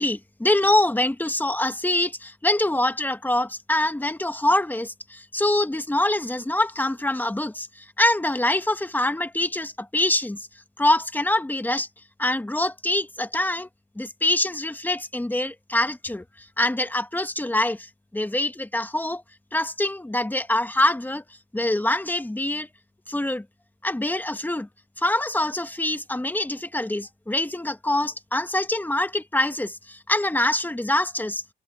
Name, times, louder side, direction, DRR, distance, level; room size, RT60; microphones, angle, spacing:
voice 1, 0.0-10.4 10.8-11.9 12.2-13.7 13.9-19.2 19.5-21.2 21.5-22.7 23.1-23.4 23.8-24.7 25.0-31.4, left 1 dB, 10° left, 1.5 m, -24 dB
cardioid pair, 90°, 20 cm